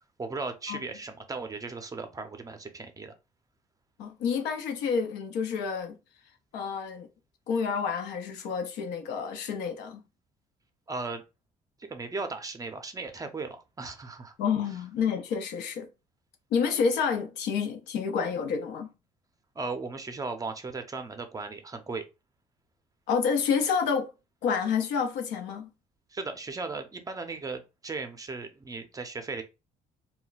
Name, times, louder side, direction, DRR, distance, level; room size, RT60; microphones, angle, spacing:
voice 1, 0.2-3.1 10.9-11.2 11.8-14.4 19.6-22.0 26.1-29.4, right 3 dB, 20° right, 0.5 m, -36 dB
voice 2, 4.0-6.0 6.5-7.1 7.5-10.0 14.4-15.9 16.5-18.9 23.1-24.1 24.4-25.7, left 6 dB, 85° left, 0.7 m, -29 dB
2.2 x 2.2 x 3.9 m
cardioid pair, 110°, 17 cm